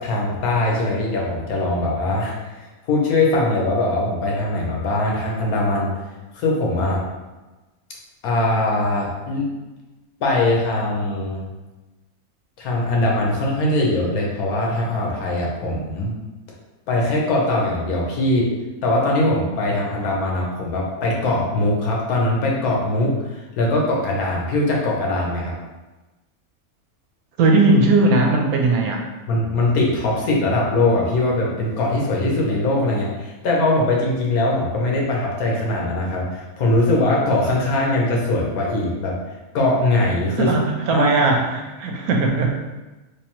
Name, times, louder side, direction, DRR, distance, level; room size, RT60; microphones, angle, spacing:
voice 1, 0.0-2.5 2.9-5.9 6.3-7.0 8.2-9.4 10.2-11.4 12.6-16.1 16.9-18.5 18.8-25.5 29.3-39.2 39.5-40.5 40.9-41.3, left 2 dB, 90° left, -2 dB, 1.3 m, -21 dB
voice 2, 27.4-29.0 40.4-42.5, right 2 dB, 85° right, 1 dB, 1.1 m, -18 dB
3.3 x 3.1 x 2.9 m, 1.1 s
omnidirectional pair, 1.5 m